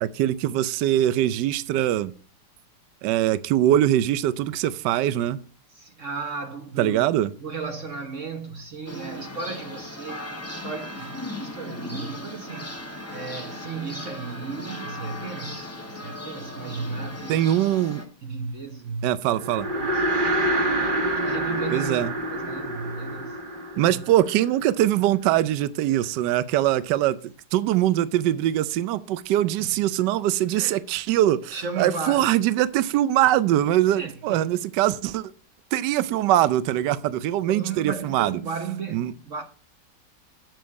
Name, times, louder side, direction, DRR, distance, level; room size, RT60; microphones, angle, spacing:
voice 1, 0.0-2.1 3.0-5.4 6.8-7.3 17.3-18.0 19.0-19.7 21.7-22.1 23.8-27.2 27.5-35.3 35.7-38.4 38.9-39.1, right 13 dB, 80° right, 1.2 m, -22 dB
voice 2, 5.7-7.1 7.4-17.4 18.2-19.1 19.6-20.0 21.1-23.4 23.8-24.0 29.6-29.7 30.5-30.8 31.5-32.3 33.9-34.5 37.5-39.4, right 4 dB, 50° right, 1.1 m, -35 dB
sound 1, 8.9-18.1, left 1 dB, 10° left, 0.9 m, -37 dB
sound 2, 19.4-24.8, right 1 dB, 30° right, 1.4 m, -27 dB
7.6 x 7.0 x 4.6 m
omnidirectional pair, 1.9 m